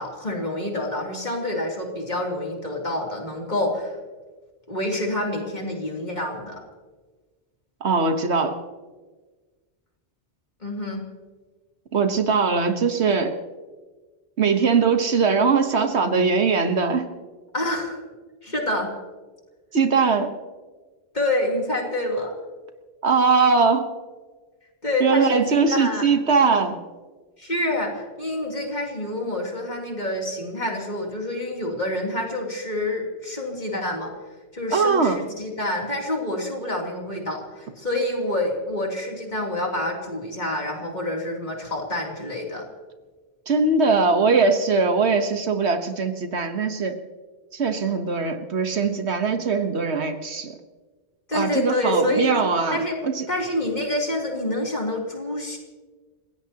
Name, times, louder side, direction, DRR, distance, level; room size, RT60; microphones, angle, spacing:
voice 1, 0.0-4.0 4.7-6.6 10.6-11.0 17.5-18.0 18.4-18.9 21.1-22.3 24.8-26.1 27.4-34.1 34.5-42.7 51.3-52.4 52.7-53.0 53.3-55.6, left 1 dB, 40° left, -1 dB, 3.3 m, -27 dB
voice 2, 7.8-8.6 11.9-13.4 14.4-17.1 19.7-20.3 23.0-23.9 25.0-26.8 34.7-35.2 43.5-47.0 47.5-50.6 51.3-53.3, right 4 dB, 70° right, 7 dB, 1.5 m, -21 dB
30.0 x 16.5 x 2.9 m, 1.3 s
omnidirectional pair, 1.2 m